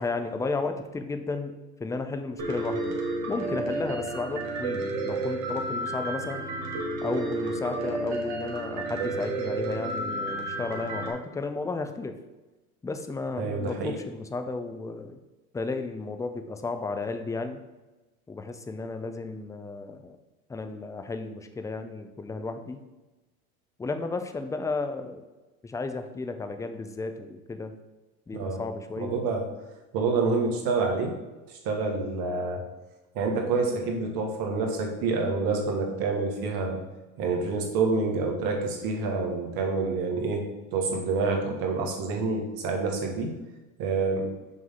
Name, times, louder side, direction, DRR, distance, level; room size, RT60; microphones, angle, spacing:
voice 1, 0.0-3.0 3.3-6.5 7.0-12.1 12.8-15.2 15.5-17.6 18.3-20.2 20.5-22.8 23.8-25.2 25.6-27.7 28.3-29.2, left 3 dB, 10° left, 7 dB, 0.5 m, -33 dB
Piano, 2.4-11.1, right 2 dB, 70° right, 1.7 m, -31 dB
voice 2, 13.4-13.9 28.3-28.6 29.0-29.4 29.9-31.1 31.6-32.6 33.1-36.8 37.2-40.4 40.7-43.3 43.8-44.3, right 4 dB, 55° right, 2 dB, 1.7 m, -27 dB
6.2 x 3.5 x 5.6 m, 1.1 s
hypercardioid pair, 95°, 42 cm